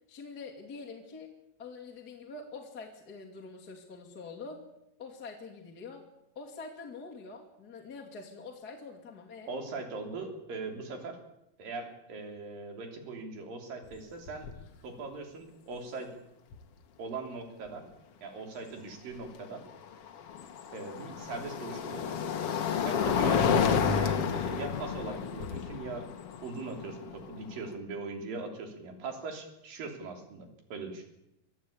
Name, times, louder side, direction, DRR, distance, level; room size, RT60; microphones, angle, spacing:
voice 1, 0.1-1.3 1.6-4.6 5.0-6.0 6.3-9.5, left 4 dB, 30° left, 0 dB, 2.5 m, -45 dB
voice 2, 9.5-11.2 11.6-14.5 14.8-16.1 17.0-17.9 18.2-19.6 20.7-22.2 22.8-26.1 26.4-31.0, right 3 dB, 65° right, 4 dB, 4.9 m, -40 dB
sound 1, 13.8-14.0 14.3-14.7 16.5-16.6 19.6-27.7, left 7 dB, 55° left, 1.7 m, -30 dB
25.5 x 15.0 x 8.6 m, 0.85 s
omnidirectional pair, 4.4 m